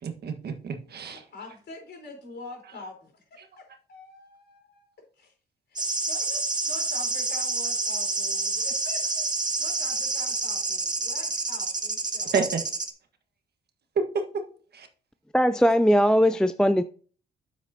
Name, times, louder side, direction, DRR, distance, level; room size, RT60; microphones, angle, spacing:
voice 1, 0.0-1.2 12.3-12.6 13.9-14.4 14.7-14.9, right 5 dB, 55° right, 1.5 m, -28 dB
voice 2, 1.0-4.9 5.2-5.3 5.7-9.3 9.6-12.3, left 3 dB, 60° left, 3.9 m, -45 dB
sound 1, 5.8-12.9, right 3 dB, 20° right, 1.2 m, -28 dB
voice 3, 15.3-16.8, equal, 5° left, 0.3 m, -20 dB
9.0 x 7.7 x 2.8 m
cardioid pair, 90°, 20 cm